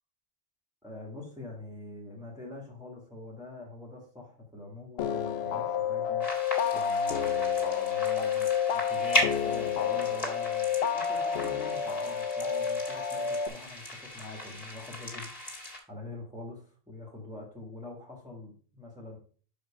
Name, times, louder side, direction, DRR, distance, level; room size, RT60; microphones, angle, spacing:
voice 1, 0.8-6.3 6.7-15.3 15.9-19.2, left 2 dB, 5° right, -3 dB, 1.4 m, -45 dB
sound 1, 5.0-13.5, left 7 dB, 90° left, 0.8 m, -29 dB
sound 2, 6.2-15.8, left 1 dB, 35° left, 2.1 m, -37 dB
6.3 x 5.0 x 4.8 m, 0.41 s
omnidirectional pair, 1.0 m